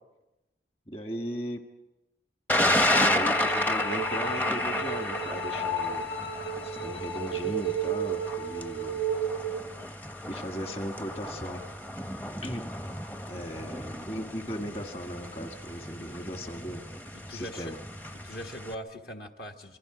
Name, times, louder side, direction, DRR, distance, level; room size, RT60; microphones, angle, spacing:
voice 1, 0.9-1.6 3.0-6.1 6.6-9.0 10.3-11.6 12.4-12.6 13.3-16.8 17.3-17.8, equal, 30° left, 4 dB, 1.6 m, -37 dB
Thunder, 2.5-18.7, left 1 dB, 10° left, 0.7 m, -32 dB
sound 1, 2.7-9.7, right 3 dB, 80° left, 1.5 m, -32 dB
voice 2, 13.3-14.0 16.0-16.1 17.1-17.7 18.1-19.8, equal, 55° left, 3 dB, 1.4 m, -42 dB
26.5 x 24.0 x 5.0 m, 0.97 s
head